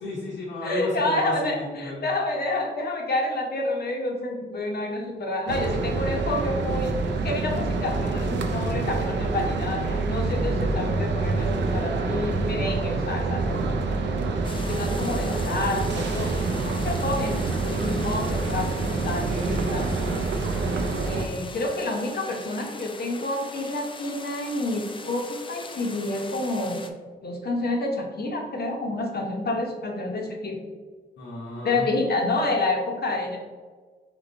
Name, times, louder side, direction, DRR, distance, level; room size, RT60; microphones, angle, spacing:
voice 1, 0.0-2.1 31.2-31.9, left 1 dB, 85° left, -7 dB, 1.2 m, -33 dB
voice 2, 0.6-7.0 7.2-13.8 14.2-14.3 14.7-20.0 21.1-26.9 27.2-30.6 31.6-33.4, left 2 dB, 60° left, 2 dB, 1.0 m, -29 dB
sound 1, 5.5-21.3, right 3 dB, 70° right, 0.6 m, -26 dB
sound 2, 14.4-26.9, left 3 dB, 25° left, 0.5 m, -41 dB
3.8 x 3.3 x 3.9 m, 1.4 s
supercardioid pair, 55°, 19 cm